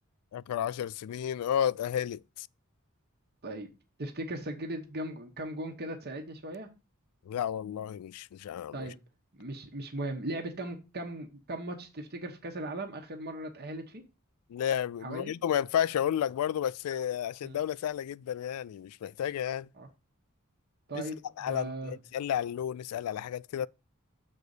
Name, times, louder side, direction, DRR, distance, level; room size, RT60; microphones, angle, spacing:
voice 1, 0.3-2.5 7.3-8.9 14.5-19.7 20.9-21.1 21.4-23.7, left 9 dB, 90° left, 0.3 m, -32 dB
voice 2, 4.0-6.7 8.7-8.9 9.4-14.0 15.0-15.3 17.4-17.6 19.8-19.9 20.9-21.2 21.4-22.0, right 1 dB, 45° right, 1.2 m, -38 dB
6.6 x 4.0 x 6.5 m
head